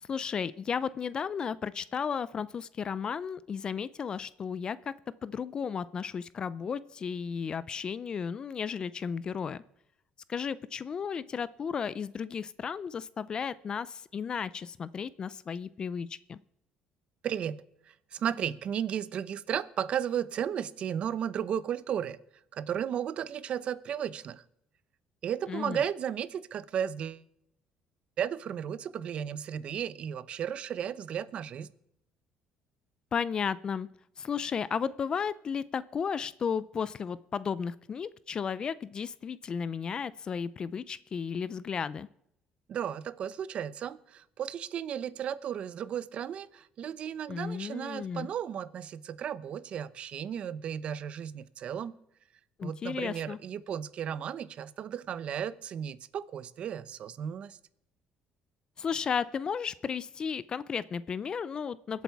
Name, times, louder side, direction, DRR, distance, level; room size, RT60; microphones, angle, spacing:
voice 1, 0.1-4.9 5.2-9.6 10.3-16.4 25.5-25.8 33.1-33.9 34.2-42.1 47.3-48.3 52.6-53.4 58.8-62.0, left 6 dB, 35° left, 18 dB, 0.4 m, -34 dB
voice 2, 17.2-22.2 22.5-24.4 25.2-27.2 28.2-31.7 42.7-51.9 52.6-57.6, right 9 dB, 50° right, 17 dB, 0.7 m, -34 dB
24.0 x 8.3 x 4.6 m, 0.77 s
cardioid pair, 130°, 2 cm